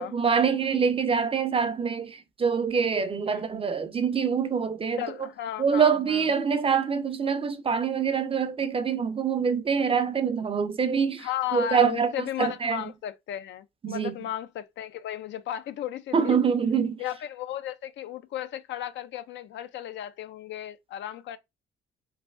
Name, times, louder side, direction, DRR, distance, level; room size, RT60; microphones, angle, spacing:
voice 1, 0.0-5.0 5.6-12.1 12.4-12.8 13.8-14.2 16.1-17.0, right 6 dB, 30° right, 0.5 m, -25 dB
voice 2, 5.0-6.3 11.2-16.4 17.0-21.4, left 11 dB, 65° left, 0.4 m, -35 dB
3.2 x 2.5 x 2.3 m
cardioid pair, 90°, 20 cm